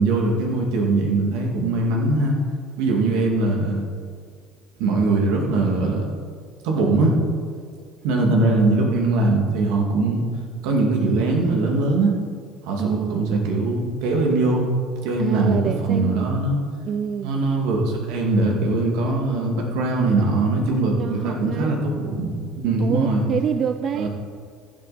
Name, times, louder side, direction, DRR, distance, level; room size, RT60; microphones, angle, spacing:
voice 1, 0.0-2.4 2.8-3.9 4.8-6.0 6.6-7.2 8.0-10.2 10.6-12.1 12.6-14.7 15.0-16.6 17.2-23.2 23.9-24.1, right 2 dB, 75° right, 0 dB, 2.4 m, -21 dB
voice 2, 2.9-3.2 12.8-13.3 15.2-16.5 16.8-17.3 21.0-21.8 22.8-24.1, right 8 dB, 45° right, 10 dB, 0.4 m, -27 dB
15.0 x 7.9 x 4.4 m, 2.1 s
supercardioid pair, 95°, 0 cm